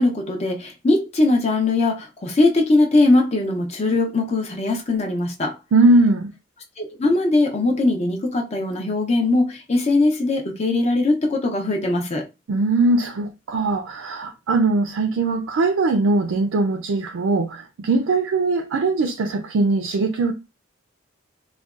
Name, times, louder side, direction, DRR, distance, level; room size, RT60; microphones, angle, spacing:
voice 1, 0.0-5.6 6.8-12.3, left 2 dB, 35° left, 0.6 m, -20 dB
voice 2, 5.7-6.3 12.5-20.3, right 2 dB, 80° right, 0.4 m, -20 dB
3.8 x 2.2 x 2.4 m
head